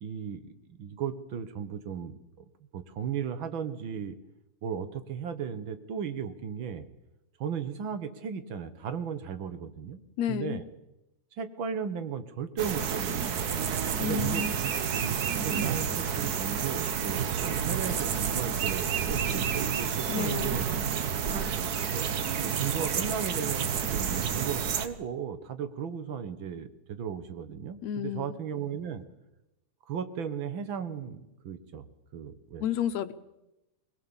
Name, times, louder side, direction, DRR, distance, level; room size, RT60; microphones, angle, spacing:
voice 1, 0.0-2.4 2.7-4.2 4.6-6.9 7.4-10.0 10.3-10.6 11.4-15.2 15.4-20.7 21.9-29.0 29.9-31.9 32.1-32.7, right 7 dB, 55° right, 11 dB, 1.6 m, -36 dB
voice 2, 10.2-10.6 14.0-14.5 20.1-20.6 27.8-28.4 32.6-33.1, left 9 dB, 75° left, 10 dB, 2.2 m, -31 dB
sound 1, 12.6-24.9, right 7 dB, 70° right, 0.9 m, -30 dB
21.5 x 21.0 x 7.2 m, 0.94 s
omnidirectional pair, 3.3 m